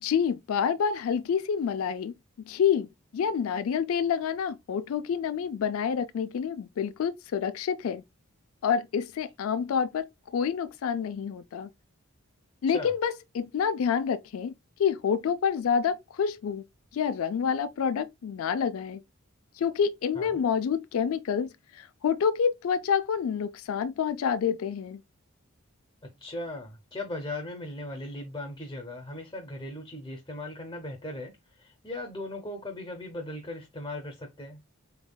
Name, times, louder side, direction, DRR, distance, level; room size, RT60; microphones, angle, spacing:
voice 1, 0.0-2.1 2.4-8.0 8.6-10.0 10.3-11.7 12.6-14.5 14.8-16.6 16.9-19.0 19.6-25.0, left 7 dB, 75° left, 0.3 m, -28 dB
voice 2, 26.2-34.6, left 1 dB, 20° left, 0.6 m, -38 dB
4.1 x 3.6 x 2.2 m
head